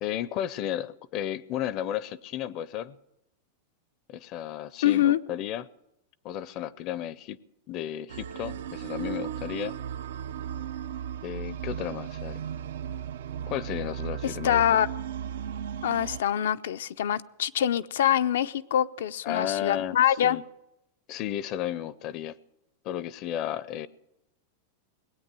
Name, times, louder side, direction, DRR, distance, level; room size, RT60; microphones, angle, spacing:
voice 1, 0.0-3.0 4.1-5.7 6.2-7.4 7.7-9.7 11.2-12.4 13.5-14.8 19.2-20.0 20.2-20.4 21.1-22.4 22.8-23.9, left 11 dB, 40° left, 0.5 m, -33 dB
voice 2, 4.8-5.2 14.2-14.9 15.8-20.4, left 10 dB, 85° left, 0.6 m, -24 dB
sound 1, 8.1-16.2, right 9 dB, 90° right, 0.7 m, -36 dB
19.5 x 8.7 x 7.6 m
supercardioid pair, 150°, 0 cm